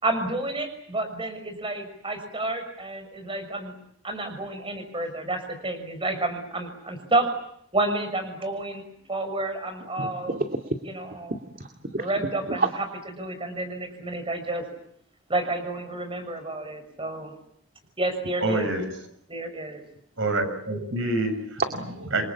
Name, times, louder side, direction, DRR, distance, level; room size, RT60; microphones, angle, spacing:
voice 1, 0.0-3.7 4.0-7.3 7.7-8.8 9.1-10.4 10.8-11.4 12.0-12.8 13.2-14.6 15.3-17.3 18.0-18.7 19.3-19.8, right 2 dB, 25° right, 8 dB, 6.1 m, -30 dB
voice 2, 10.0-10.8 11.3-12.1 12.5-12.7 21.7-22.1, right 2 dB, 45° right, 5 dB, 2.3 m, -30 dB
voice 3, 18.4-18.9 20.2-21.6 22.1-22.2, right 2 dB, 65° right, 8 dB, 7.0 m, -26 dB
28.5 x 23.5 x 8.8 m, 0.72 s
head